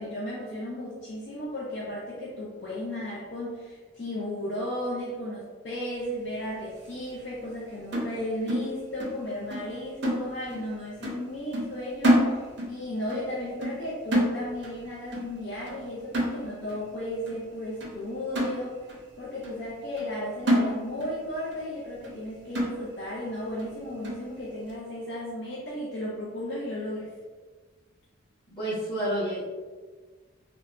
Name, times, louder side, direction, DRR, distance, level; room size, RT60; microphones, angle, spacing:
voice 1, 0.0-18.8 19.2-27.1, left 1 dB, 55° left, -6 dB, 0.5 m, -35 dB
sound 1, 7.9-9.2 9.5-9.7 10.0-10.7 11.0-11.3 11.5-12.8 13.1-13.3 13.6-14.8 15.1-15.4 15.7-15.8 16.1-16.8 17.3-17.4 17.8-17.9 18.4-19.0 19.4-19.5 20.0-20.2 20.5-21.2 21.5-21.6 22.0-22.2 22.6-23.1 23.6-23.7 24.0-24.3, equal, 55° right, 0.5 m, -28 dB
voice 2, 28.5-29.5, equal, 20° left, -10 dB, 1.2 m, -29 dB
3.1 x 2.1 x 2.4 m, 1.4 s
head